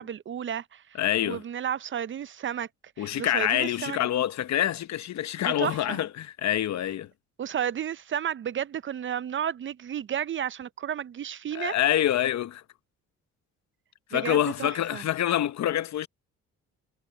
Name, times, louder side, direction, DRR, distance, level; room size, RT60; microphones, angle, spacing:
voice 1, 0.0-0.8 1.2-2.7 3.0-4.0 5.5-6.0 7.4-11.7 14.1-15.0, right 9 dB, 40° right, 0.5 m, -32 dB
voice 2, 0.9-1.4 3.0-7.1 11.5-12.6 14.1-16.1, left 12 dB, 65° left, 0.9 m, -26 dB
cardioid pair, 90°, 30 cm